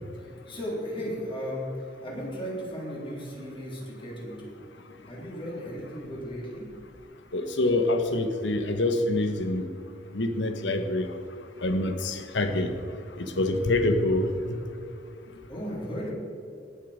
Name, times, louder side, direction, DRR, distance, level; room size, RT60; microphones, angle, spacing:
voice 1, 0.2-4.5 5.1-6.7 9.8-10.6 15.5-16.1, equal, 30° left, -4 dB, 3.7 m, -36 dB
voice 2, 7.3-9.7 10.1-11.1 11.6-12.7 13.2-14.6, left 2 dB, 85° left, 7 dB, 1.2 m, -26 dB
18.0 x 7.5 x 5.1 m, 2.6 s
head